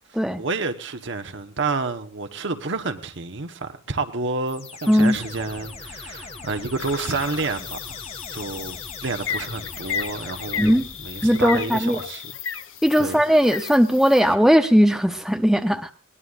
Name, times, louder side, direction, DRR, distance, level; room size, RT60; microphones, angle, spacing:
voice 1, 0.1-8.0 8.3-12.3 13.0-13.2, right 3 dB, 65° right, 1.2 m, -29 dB
sound 1, 4.5-11.3, left 3 dB, 30° left, 2.0 m, -40 dB
sound 2, 6.8-14.3, left 7 dB, 75° left, 1.0 m, -34 dB
voice 2, 11.2-12.0 12.8-15.9, equal, ahead, 0.8 m, -18 dB
21.5 x 19.0 x 2.5 m
head